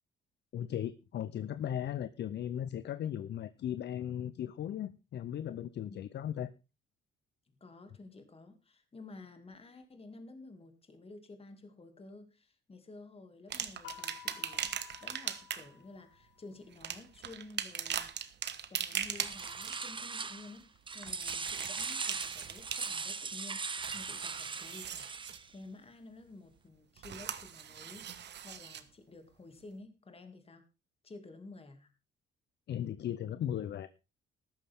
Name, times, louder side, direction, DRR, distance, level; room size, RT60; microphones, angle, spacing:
voice 1, 0.5-6.5 32.7-33.9, left 10 dB, 60° left, 15 dB, 0.7 m, -37 dB
voice 2, 7.6-18.1 18.7-25.1 25.5-30.6 31.0-31.9, left 2 dB, 30° left, 7 dB, 2.4 m, -52 dB
sound 1, 13.5-15.8 16.7-19.9 20.9-23.2 23.6-25.4 27.0-28.8 29.6-29.7, right 9 dB, 60° right, 1.3 m, -40 dB
sound 2, 13.8-16.6, left 14 dB, 85° left, 0.9 m, -53 dB
sound 3, 19.1-20.6 20.9-25.5, right 4 dB, 25° right, 0.8 m, -39 dB
14.0 x 12.0 x 3.6 m, 0.29 s
cardioid pair, 90°, 20 cm